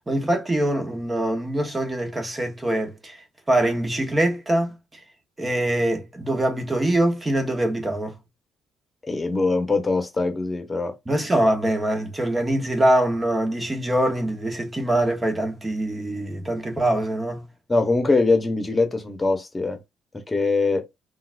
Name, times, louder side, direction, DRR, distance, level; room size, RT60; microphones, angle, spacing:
voice 1, 0.1-4.7 5.4-8.2 11.1-17.5, right 1 dB, 20° right, 1.1 m, -23 dB
voice 2, 9.0-10.9 17.7-19.8 20.1-20.8, left 3 dB, 20° left, 1.1 m, -22 dB
3.8 x 2.4 x 2.5 m
supercardioid pair, 60°, 0 cm